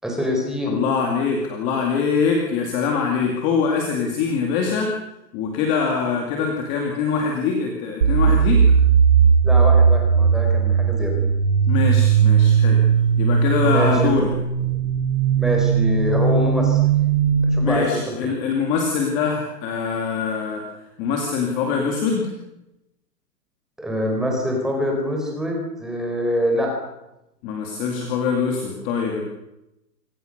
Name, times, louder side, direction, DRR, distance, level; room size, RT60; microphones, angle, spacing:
voice 1, 0.0-0.7 9.4-11.1 13.6-14.1 14.6-14.7 15.4-16.8 17.5-17.9 18.2-18.3 23.8-26.7, equal, ahead, 0 dB, 4.4 m, -24 dB
voice 2, 0.7-4.9 5.3-8.6 11.7-12.8 13.2-14.3 17.6-20.6 21.0-22.3 27.4-29.2, left 5 dB, 15° left, 1 dB, 2.5 m, -23 dB
sound 1, 8.0-17.8, right 6 dB, 80° right, 4.3 m, -17 dB
26.0 x 26.0 x 6.7 m, 0.90 s
hypercardioid pair, 175°, 48 cm